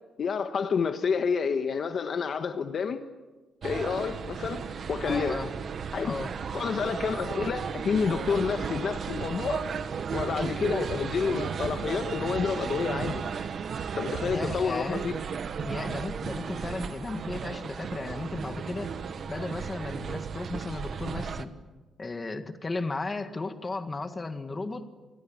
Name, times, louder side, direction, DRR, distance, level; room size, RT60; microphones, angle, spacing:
voice 1, 0.2-3.0 3.6-5.4 5.9-6.2 6.5-9.7 10.1-13.2 14.0-15.2, left 6 dB, 45° left, 1.3 m, -29 dB
sound 1, 3.6-21.5, right 6 dB, 45° right, 1.3 m, -34 dB
voice 2, 5.1-5.5 6.0-6.3 14.2-15.1 15.6-18.9 19.3-21.5 22.0-24.8, left 3 dB, 20° left, 1.8 m, -35 dB
29.0 x 21.5 x 8.9 m
cardioid pair, 160°, 0 cm